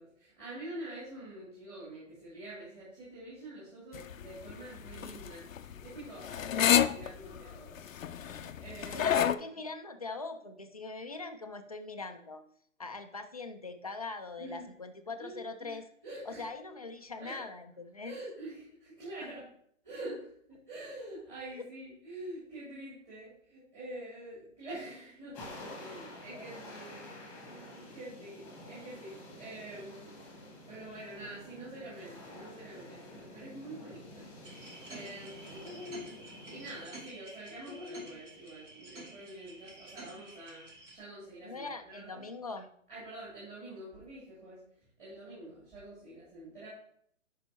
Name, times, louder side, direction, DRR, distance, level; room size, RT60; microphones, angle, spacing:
voice 1, 0.0-7.8 8.1-9.2 14.4-14.7 15.2-15.8 16.0-16.5 17.2-17.4 18.0-19.4 19.8-25.4 25.7-27.0 27.3-34.3 34.9-35.7 36.5-42.2 42.9-44.6 45.0-46.7, right 1 dB, 20° right, -11 dB, 3.0 m, -46 dB
sound 1, 3.9-9.4, left 9 dB, 90° left, 0.6 m, -30 dB
voice 2, 8.9-12.4 12.8-15.9 16.3-18.2 19.2-19.3 21.5-21.7 25.9-26.4 27.4-27.5 41.4-42.7, left 3 dB, 30° left, 6 dB, 0.4 m, -42 dB
sound 2, 25.3-36.9, left 1 dB, 5° left, 1.4 m, -49 dB
sound 3, 34.4-41.0, equal, 65° right, 3.0 m, -48 dB
10.5 x 5.4 x 3.0 m, 0.65 s
hypercardioid pair, 160°, 39 cm